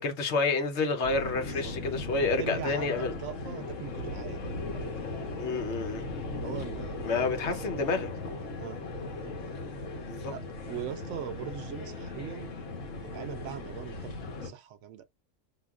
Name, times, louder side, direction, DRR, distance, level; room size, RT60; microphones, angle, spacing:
voice 1, 0.0-3.1 5.4-6.0 7.0-8.1 10.1-10.3, left 3 dB, 65° left, 1.0 m, -29 dB
sound 1, 1.0-14.5, left 2 dB, 90° left, 1.3 m, -38 dB
voice 2, 2.4-5.0 6.4-7.2 7.5-8.8 10.3-12.6 13.0-14.1 14.4-15.1, right 9 dB, 75° right, 0.9 m, -41 dB
5.6 x 2.3 x 2.3 m
omnidirectional pair, 1.3 m